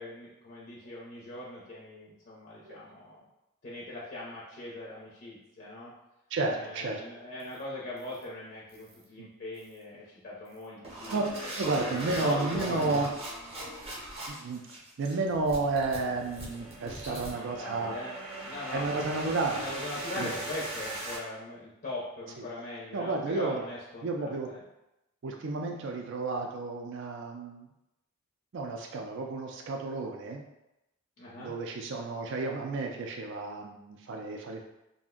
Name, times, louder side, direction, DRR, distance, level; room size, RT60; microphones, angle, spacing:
voice 1, 0.0-3.2 3.6-5.9 6.5-13.2 16.8-18.2 18.4-19.2 19.5-24.6 31.2-31.5, left 2 dB, 45° left, -6 dB, 0.5 m, -41 dB
voice 2, 6.3-7.0 9.2-9.3 11.1-11.2 11.6-13.1 14.3-14.6 15.0-17.9 18.7-19.7 20.1-20.3 22.4-22.5 22.9-23.6 24.0-24.5 25.2-27.7 28.5-30.4 31.4-34.6, right 3 dB, 55° right, 2 dB, 0.4 m, -32 dB
sound 1, 7.4-7.6 8.0-8.2 8.7-9.0 9.6-9.8 10.5-21.2, right 1 dB, 30° right, 0.7 m, -40 dB
2.5 x 2.1 x 3.6 m, 0.91 s
head